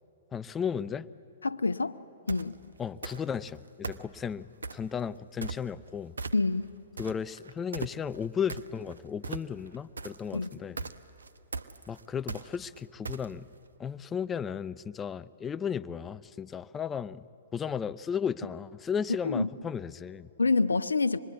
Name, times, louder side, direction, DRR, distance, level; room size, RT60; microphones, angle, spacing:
voice 1, 0.3-1.1 2.8-6.1 7.0-10.8 11.9-13.5 13.8-20.3, left 7 dB, 15° left, 16 dB, 0.5 m, -35 dB
voice 2, 1.4-2.0 2.3-2.6 6.3-6.7 10.3-10.5 19.2-19.5 20.4-21.2, left 3 dB, 85° left, 13 dB, 0.6 m, -27 dB
sound 1, 2.3-2.5 3.0-3.5 3.8-4.9 5.4-5.9 6.2-6.7 7.0-13.6, right 4 dB, 80° right, 0.8 m, -39 dB
26.0 x 21.0 x 8.2 m, 2.8 s
hypercardioid pair, 120°, 0 cm